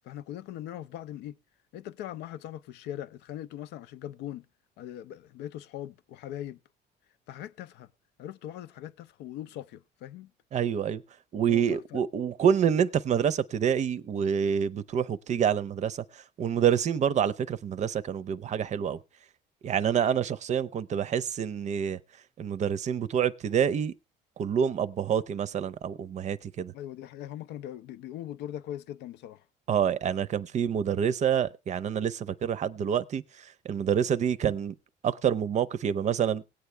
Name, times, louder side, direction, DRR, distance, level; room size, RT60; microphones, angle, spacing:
voice 1, 0.0-1.4 1.7-4.5 4.8-6.6 7.3-7.9 8.2-10.3 11.5-12.0 26.7-29.4, left 12 dB, 85° left, 0.5 m, -40 dB
voice 2, 10.5-11.0 11.3-19.0 19.6-22.0 22.4-23.9 24.4-26.7 29.7-33.2 33.6-34.7 35.0-36.4, right 8 dB, 45° right, 0.5 m, -27 dB
18.5 x 8.2 x 3.3 m
cardioid pair, 110°, 17 cm